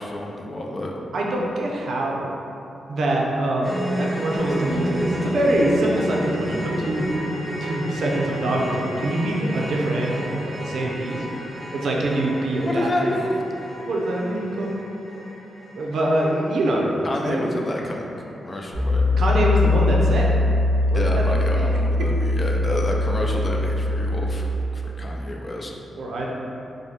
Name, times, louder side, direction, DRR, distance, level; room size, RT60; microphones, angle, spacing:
voice 1, 0.0-0.9 12.7-13.5 17.0-19.1 20.9-24.5 24.7-25.7, left 1 dB, 25° left, 0 dB, 0.3 m, -29 dB
voice 2, 1.1-2.3 2.9-7.1 7.6-11.2 11.7-13.1 13.9-14.8 15.7-17.4 19.2-20.3 20.9-21.8 26.0-26.3, right 1 dB, 65° right, -2 dB, 0.5 m, -24 dB
sound 1, 3.6-17.8 18.1-18.3 18.7-18.8, equal, ahead, 0.8 m, -32 dB
sound 2, 4.4-9.5, equal, 75° left, 0.9 m, -35 dB
Piano, 18.7-24.3, left 2 dB, 45° left, 0.9 m, -21 dB
5.0 x 2.1 x 2.8 m, 2.8 s
wide cardioid pair, 140°, 0 cm